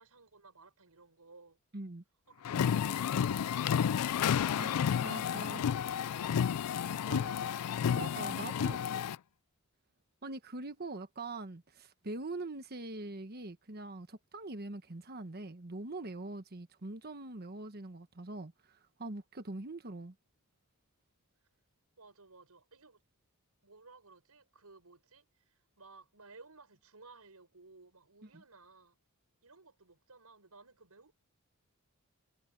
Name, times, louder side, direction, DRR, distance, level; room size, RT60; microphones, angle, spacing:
voice 1, 0.0-1.6 2.3-4.1 7.0-7.4 7.8-8.6 22.0-23.0 23.6-29.0 29.4-31.1, right 3 dB, 90° right, 5.0 m, -58 dB
voice 2, 1.7-2.0 4.6-5.6 7.1-7.3 7.9-8.8 10.2-20.1, right 2 dB, 45° right, 1.3 m, -43 dB
sound 1, 2.5-9.2, left 8 dB, 90° left, 0.4 m, -31 dB
head